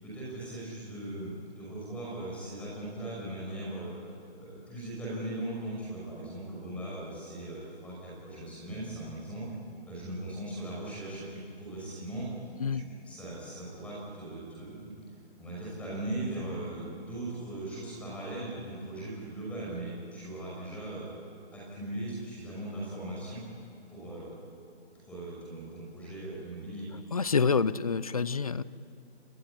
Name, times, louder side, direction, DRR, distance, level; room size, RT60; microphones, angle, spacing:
voice 1, 0.0-3.9 4.3-9.5 9.8-12.3 12.7-15.0 15.4-21.1 21.5-23.4 23.9-24.3 24.9-26.9, right 1 dB, 5° left, -6 dB, 5.8 m, -39 dB
voice 2, 27.1-28.6, left 5 dB, 35° left, 18 dB, 0.6 m, -27 dB
28.5 x 21.0 x 9.8 m, 2.5 s
hypercardioid pair, 170°, 32 cm